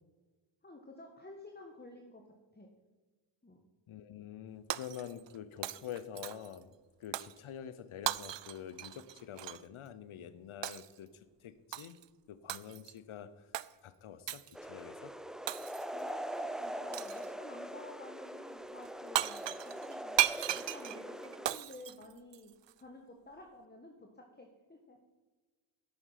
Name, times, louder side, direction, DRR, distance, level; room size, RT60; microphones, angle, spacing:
voice 1, 0.6-2.2 2.5-2.7 3.4-3.6 15.9-20.2 20.6-22.5 22.8-25.0, left 2 dB, 20° left, 2 dB, 1.5 m, -52 dB
voice 2, 3.9-6.7 7.0-12.0 12.3-13.5 13.8-15.1, left 9 dB, 75° left, 15 dB, 0.9 m, -47 dB
Shatter, 4.7-5.4 5.6-6.6 7.1-7.4 8.0-9.6 10.6-11.0 11.7-12.0 12.5-13.0 13.5-13.7 14.3-14.5 15.5-16.0 16.9-17.3 18.8-18.9 19.1-22.7, right 13 dB, 60° right, 0.5 m, -36 dB
sound 1, 14.5-21.6, equal, ahead, 0.6 m, -42 dB
10.5 x 8.3 x 5.7 m, 1.3 s
cardioid pair, 50°, 50 cm